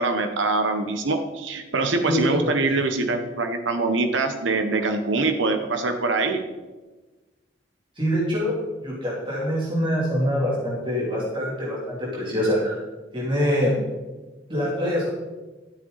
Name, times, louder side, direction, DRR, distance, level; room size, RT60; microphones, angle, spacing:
voice 1, 0.0-6.4, right 3 dB, 80° right, 6 dB, 0.9 m, -24 dB
voice 2, 2.0-2.5 8.0-8.5 8.8-12.7 13.1-13.7 14.5-15.1, equal, 25° right, -6 dB, 3.0 m, -24 dB
13.5 x 8.0 x 4.0 m, 1.2 s
head